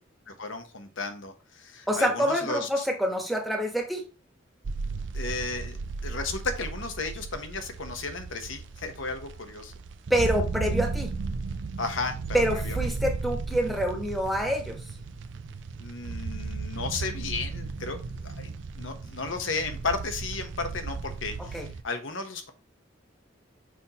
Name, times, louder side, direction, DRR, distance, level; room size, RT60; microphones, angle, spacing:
voice 1, 0.3-2.9 5.1-5.8 6.0-9.7 11.8-12.9 15.8-18.5 18.7-22.5, left 3 dB, 75° left, 7 dB, 1.1 m, -34 dB
voice 2, 1.9-4.0 10.1-11.1 12.3-14.8 21.5-21.7, equal, ahead, 1 dB, 1.1 m, -26 dB
sound 1, 4.6-21.8, right 4 dB, 65° right, 0.5 m, -35 dB
6.2 x 5.5 x 2.9 m, 0.33 s
head